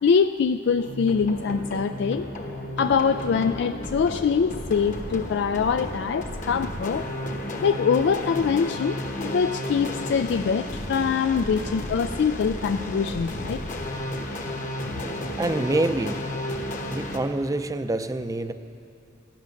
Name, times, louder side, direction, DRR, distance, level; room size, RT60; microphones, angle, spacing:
voice 1, 0.0-2.3 2.8-7.1 7.6-13.6 14.8-14.9, left 6 dB, 65° left, 9 dB, 0.3 m, -24 dB
sound 1, 0.8-17.2, left 1 dB, 45° left, 1.2 m, -33 dB
voice 2, 15.4-16.3 16.9-18.5, right 2 dB, 20° right, 10 dB, 0.5 m, -26 dB
15.5 x 10.5 x 6.4 m, 2.6 s
head